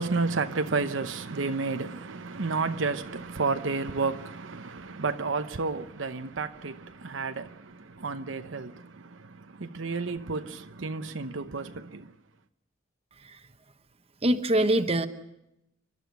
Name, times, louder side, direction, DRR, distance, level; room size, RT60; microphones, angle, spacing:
voice 1, 0.0-12.1, right 4 dB, 70° right, 0.8 m, -31 dB
voice 2, 14.2-15.1, right 1 dB, 30° right, 1.1 m, -23 dB
28.5 x 12.0 x 9.3 m
head